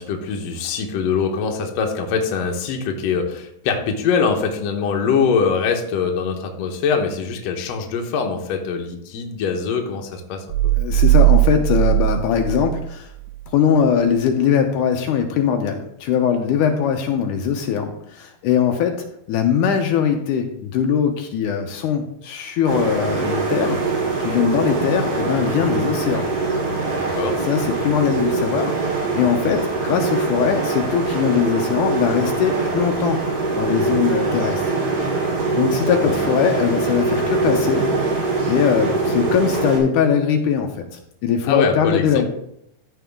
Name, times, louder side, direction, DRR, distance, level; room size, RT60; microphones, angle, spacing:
voice 1, 0.0-10.7 25.6-25.8 27.0-27.4 36.1-36.2 41.4-42.3, left 5 dB, 65° left, 3 dB, 1.9 m, -23 dB
sound 1, 10.5-13.5, right 16 dB, 85° right, 2.3 m, -18 dB
voice 2, 10.8-13.1 13.5-23.8 24.2-26.3 27.4-33.2 33.5-34.6 35.5-37.9 38.5-40.7 41.2-42.3, left 8 dB, 80° left, 4 dB, 2.2 m, -21 dB
sound 2, 22.7-39.8, right 3 dB, 65° right, 4.1 m, -23 dB
14.0 x 4.7 x 3.5 m, 0.75 s
omnidirectional pair, 3.8 m